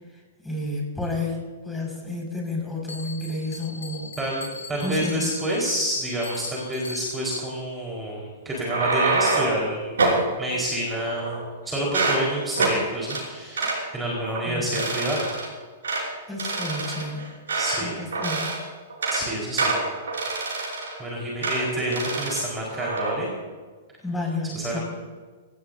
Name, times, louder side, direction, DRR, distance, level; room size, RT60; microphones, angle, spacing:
voice 1, 0.4-4.2 4.8-5.3 13.6-13.7 14.4-14.8 16.3-17.3 17.8-18.5 24.0-24.8, left 2 dB, 5° left, -1 dB, 5.8 m, -31 dB
Bell, 2.9-7.4, left 4 dB, 80° left, 4.7 m, -40 dB
voice 2, 4.2-10.0 10.4-15.3 17.6-18.0 19.1-19.7 20.5-23.3 24.5-24.8, right 1 dB, 10° right, -4 dB, 4.6 m, -28 dB
sound 1, 8.5-9.6 10.0-10.3 10.9-11.5 11.8-12.2 12.6-12.8 13.1-13.2 13.6-13.8 14.2-14.4 14.7-15.5 15.8-16.1 16.4-17.9 18.1-18.6 18.9-19.2 19.6-21.0 21.4-21.6 21.9-22.4 22.8-23.1, right 3 dB, 65° right, 6.2 m, -26 dB
26.5 x 17.0 x 2.8 m, 1.4 s
figure-of-eight pair, 105°, 0 cm